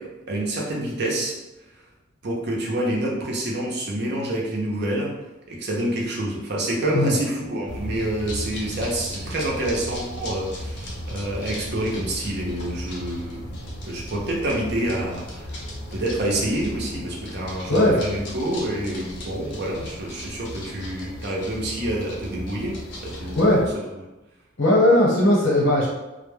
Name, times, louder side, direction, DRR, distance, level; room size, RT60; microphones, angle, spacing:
voice 1, 0.0-1.3 2.2-5.1 5.5-13.4 13.8-15.6 15.9-23.6, right 1 dB, 60° right, -2 dB, 0.6 m, -27 dB
sound 1, 7.7-23.7, equal, 60° left, 0.6 m, -36 dB
voice 2, 24.6-25.9, left 1 dB, 80° left, -5 dB, 1.0 m, -18 dB
2.2 x 2.1 x 3.2 m, 1.0 s
head